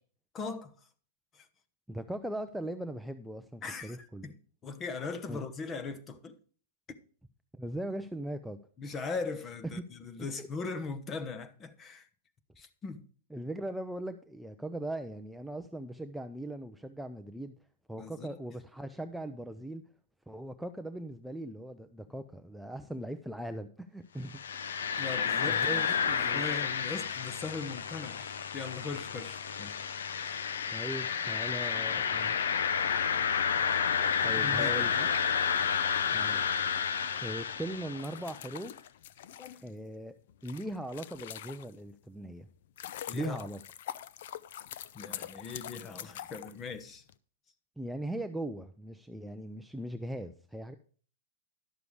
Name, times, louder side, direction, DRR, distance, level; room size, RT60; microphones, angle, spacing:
voice 1, 0.3-0.7 1.3-1.5 3.6-4.3 4.6-6.4 8.8-12.1 12.6-13.0 17.9-18.4 25.0-29.8 30.2-30.4 34.4-35.1 39.4-39.7 43.0-43.5 44.9-47.0, left 4 dB, 25° left, 1.0 m, -40 dB
voice 2, 1.9-4.2 5.3-5.5 7.5-8.6 9.7-9.8 10.2-10.5 13.3-17.5 17.9-19.8 20.3-24.4 25.4-26.5 30.7-32.4 34.2-34.9 36.1-36.6 37.2-38.8 39.6-40.2 40.4-42.5 43.1-43.6 47.8-50.7, right 1 dB, ahead, 0.5 m, -39 dB
sound 1, 24.3-38.3, left 7 dB, 85° left, 0.8 m, -31 dB
sound 2, 37.9-42.0 42.4-47.1, left 11 dB, 65° left, 0.5 m, -45 dB
11.0 x 6.8 x 4.8 m
hypercardioid pair, 135°, 0 cm